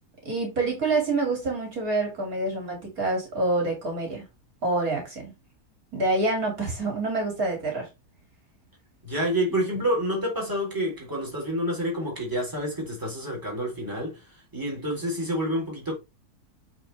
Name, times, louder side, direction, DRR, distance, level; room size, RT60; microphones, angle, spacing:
voice 1, 0.2-4.2 4.6-5.3 5.9-7.9, right 2 dB, 65° right, 3.0 m, -27 dB
voice 2, 9.0-14.3 14.5-16.0, equal, 10° right, 3.8 m, -28 dB
8.9 x 4.2 x 3.4 m
omnidirectional pair, 1.7 m